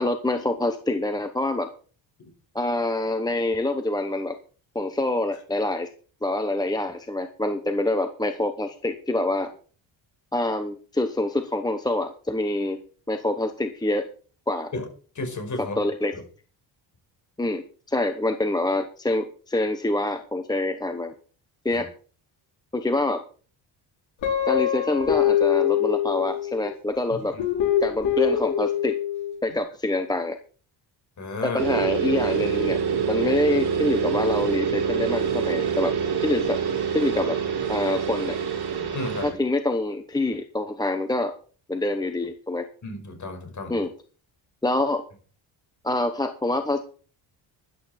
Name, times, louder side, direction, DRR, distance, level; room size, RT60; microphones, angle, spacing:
voice 1, 0.0-1.7 2.5-4.3 4.7-5.9 6.2-9.5 10.3-12.8 13.1-14.1 14.5-14.7 15.8-16.1 17.4-17.6 17.9-21.1 21.6-21.9 22.7-23.2 24.5-27.3 27.8-29.0 29.4-30.4 31.4-32.8 33.1-35.9 36.2-36.6 36.9-37.4 37.7-38.4 39.2-41.3 41.7-42.7 43.7-43.9 44.6-45.0 45.8-46.8, left 2 dB, 10° left, 7 dB, 0.9 m, -26 dB
voice 2, 15.2-15.8 16.1-16.2 21.7-21.8 27.3-27.4 31.2-31.6 38.7-39.3 42.8-43.8, left 3 dB, 40° left, 5 dB, 5.0 m, -33 dB
Guitar, 24.2-26.7 27.4-29.3, left 10 dB, 90° left, 5.3 m, -24 dB
sound 1, 31.6-39.3, right 7 dB, 55° right, 5.6 m, -26 dB
13.0 x 11.0 x 4.3 m, 0.40 s
cardioid pair, 150°, 46 cm